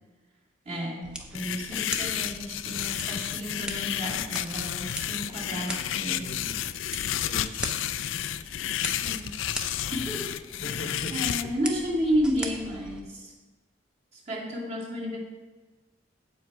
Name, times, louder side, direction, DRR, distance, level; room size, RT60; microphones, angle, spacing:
voice 1, 0.7-6.4 9.0-9.3 9.9-10.4 11.1-13.3 14.1-15.2, equal, 35° right, -4 dB, 2.1 m, -32 dB
sound 1, 1.0-13.0, equal, 5° right, 0.7 m, -41 dB
sound 2, 1.4-11.4, left 11 dB, 90° left, 0.4 m, -31 dB
voice 2, 6.2-7.6 10.6-11.5, left 1 dB, 50° left, 4 dB, 0.9 m, -40 dB
8.1 x 7.5 x 4.6 m, 1.2 s
head